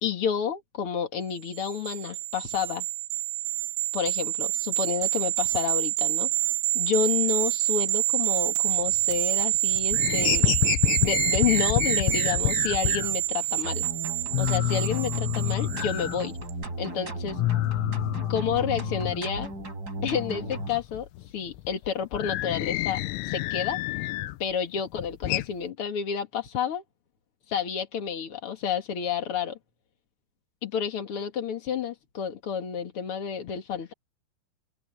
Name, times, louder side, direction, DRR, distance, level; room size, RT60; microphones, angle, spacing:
voice 1, 0.0-2.8 3.9-6.3 6.7-10.5 11.0-13.8 14.4-16.3 16.8-17.4 18.3-19.5 20.0-21.1 21.3-23.8 24.4-26.8 27.5-29.6 30.6-33.9, left 7 dB, 65° left, 1.3 m, -30 dB
sound 1, 1.5-16.2 16.5-16.7, right 16 dB, 80° right, 2.8 m, -27 dB
sound 2, 8.7-9.4 9.7-13.2 13.6-13.7 14.0-14.1 14.3-16.8 17.1-19.7 20.0-24.4 24.8-25.5, left 16 dB, 90° left, 3.4 m, -29 dB
sound 3, 13.6-20.7, right 2 dB, 20° right, 4.7 m, -36 dB
open air
omnidirectional pair, 5.7 m